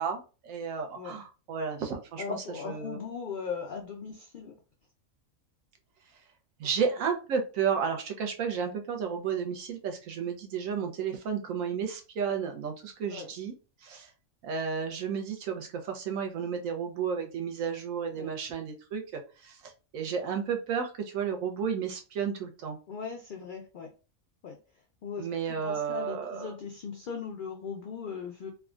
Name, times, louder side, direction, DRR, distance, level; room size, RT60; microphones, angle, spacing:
voice 1, 0.0-3.0 6.6-13.5 13.8-14.1 14.4-22.8 25.2-26.5, right 6 dB, 80° right, 4 dB, 1.0 m, -32 dB
voice 2, 2.2-4.5 13.1-13.3 18.1-18.3 22.9-23.9 24.4-24.6 25.0-28.5, left 6 dB, 80° left, 2 dB, 0.4 m, -38 dB
3.3 x 2.1 x 2.4 m, 0.33 s
omnidirectional pair, 1.4 m